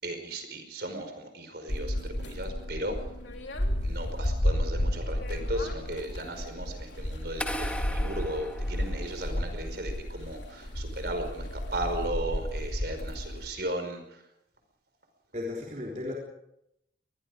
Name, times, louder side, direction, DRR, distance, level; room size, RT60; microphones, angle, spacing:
voice 1, 0.0-3.0 3.8-14.2, right 1 dB, 55° right, 6 dB, 5.2 m, -36 dB
sound 1, 1.7-13.5, equal, 80° left, 3.4 m, -32 dB
sound 2, 7.4-9.5, left 1 dB, 5° left, 1.6 m, -37 dB
voice 2, 15.3-16.1, left 2 dB, 40° right, -2 dB, 3.8 m, -35 dB
25.5 x 21.0 x 5.1 m, 0.81 s
head